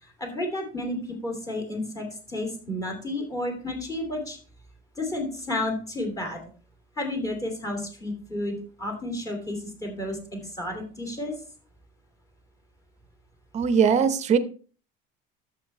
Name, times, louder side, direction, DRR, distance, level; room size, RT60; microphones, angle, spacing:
voice 1, 0.0-4.4 5.0-6.4 7.0-11.3, left 1 dB, 15° left, 2 dB, 2.7 m, -32 dB
voice 2, 13.5-14.4, right 7 dB, 35° right, 12 dB, 0.8 m, -20 dB
11.5 x 7.7 x 3.3 m, 0.40 s
cardioid pair, 150°, 21 cm